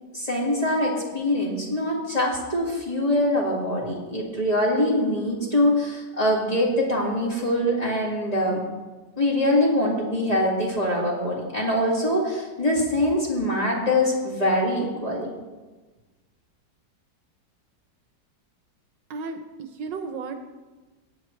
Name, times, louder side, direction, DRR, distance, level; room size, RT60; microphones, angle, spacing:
voice 1, 0.1-8.6 9.2-15.3, left 1 dB, 20° left, -4 dB, 2.2 m, -23 dB
voice 2, 19.1-20.4, right 4 dB, 75° right, 6 dB, 1.5 m, -34 dB
16.5 x 8.9 x 3.2 m, 1.2 s
omnidirectional pair, 2.0 m